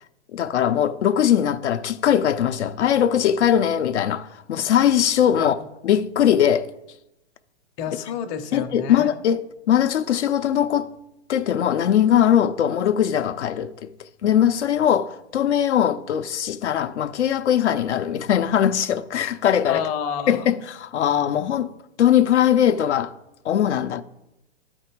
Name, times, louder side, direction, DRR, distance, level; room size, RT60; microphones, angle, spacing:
voice 1, 0.3-5.5 5.8-6.7 8.5-10.9 11.3-13.9 14.2-19.9 20.3-21.7 22.0-23.1 23.4-24.0, left 10 dB, 75° left, 0.6 m, -20 dB
voice 2, 7.8-9.1 19.7-20.5, left 7 dB, 25° left, 0.7 m, -29 dB
12.5 x 4.4 x 4.5 m
hypercardioid pair, 145°, 35 cm